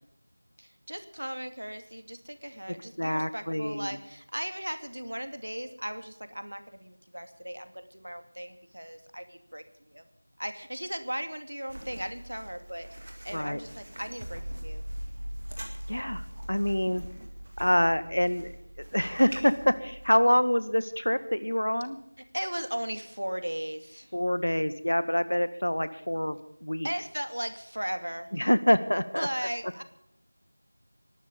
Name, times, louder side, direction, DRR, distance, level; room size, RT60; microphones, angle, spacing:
voice 1, 0.6-10.0 10.4-12.9 13.2-14.8 22.2-24.1 26.8-28.3 29.1-29.8, equal, 75° right, 8 dB, 2.3 m, -37 dB
voice 2, 2.7-4.0 13.3-13.6 15.9-17.0 17.6-18.5 18.8-22.0 24.1-26.9 28.3-29.3, equal, 85° left, 13 dB, 1.7 m, -26 dB
sound 1, 11.7-20.1, right 1 dB, 25° right, 2.0 m, -45 dB
sound 2, 14.2-21.2 21.7-21.8, equal, 40° right, 5.3 m, -41 dB
21.0 x 12.0 x 5.3 m, 0.75 s
figure-of-eight pair, 180°, 0 cm